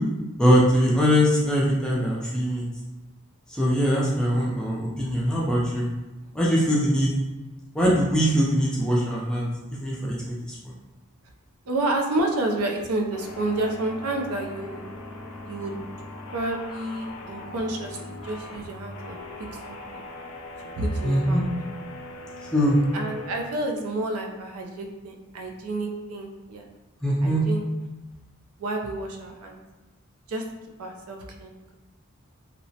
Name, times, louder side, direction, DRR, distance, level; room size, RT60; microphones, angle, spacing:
voice 1, 0.4-2.6 3.5-5.9 6.3-7.1 7.7-9.5 9.8-10.6 21.0-21.4 22.5-22.8 27.0-27.4, equal, 5° left, -5 dB, 0.4 m, -22 dB
voice 2, 11.7-14.8 15.4-15.8 16.3-19.2 19.5-20.1 20.7-21.4 22.9-26.6 27.2-27.7 28.6-29.6 30.3-30.4 30.8-31.7, right 2 dB, 85° right, 2 dB, 0.4 m, -30 dB
sound 1, 13.1-23.4, left 2 dB, 80° left, 0.4 m, -40 dB
2.8 x 2.0 x 2.7 m, 1.1 s
head